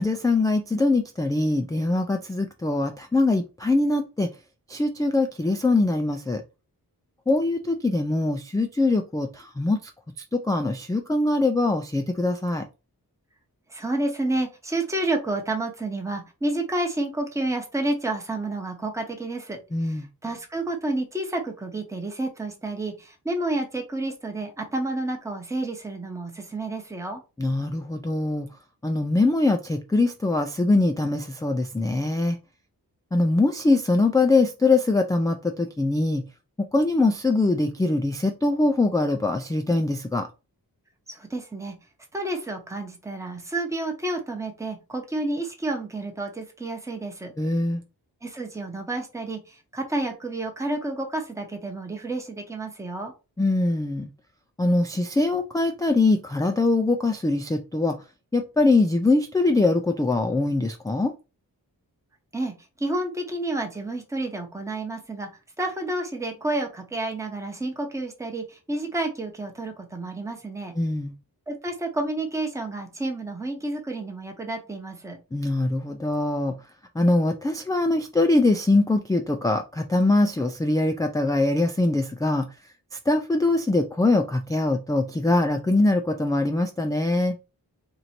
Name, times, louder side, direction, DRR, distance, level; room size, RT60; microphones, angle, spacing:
voice 1, 0.0-4.3 4.7-6.4 7.3-9.8 10.3-12.6 19.7-20.1 27.4-28.5 28.8-32.4 33.1-36.2 36.7-40.3 47.4-47.8 53.4-54.1 54.6-58.0 58.3-61.1 70.8-71.1 75.3-76.5 77.0-82.5 83.1-87.3, left 2 dB, 10° left, 0.3 m, -23 dB
voice 2, 13.7-27.2 41.1-41.7 42.1-47.3 48.2-53.1 62.3-65.3 65.6-70.7 71.5-75.2, right 2 dB, 10° right, 0.8 m, -30 dB
3.0 x 2.6 x 4.2 m
wide cardioid pair, 105°, 37 cm